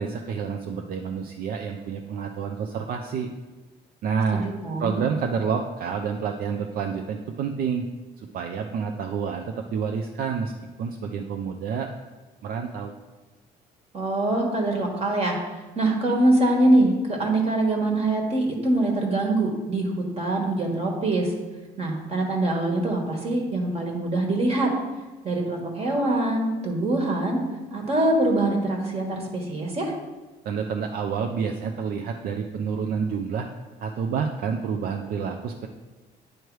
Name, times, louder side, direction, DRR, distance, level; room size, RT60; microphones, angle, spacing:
voice 1, 0.0-3.3 4.0-4.5 4.8-7.9 8.2-10.5 10.8-11.9 12.4-12.9 30.4-33.5 33.8-35.7, right 6 dB, 60° right, 3 dB, 0.5 m, -28 dB
voice 2, 4.3-5.0 13.9-15.4 15.7-21.3 21.8-24.7 25.2-27.4 27.7-29.9, right 2 dB, 35° right, 1 dB, 1.4 m, -24 dB
9.2 x 3.2 x 4.6 m, 1.2 s
cardioid pair, 110°, 17 cm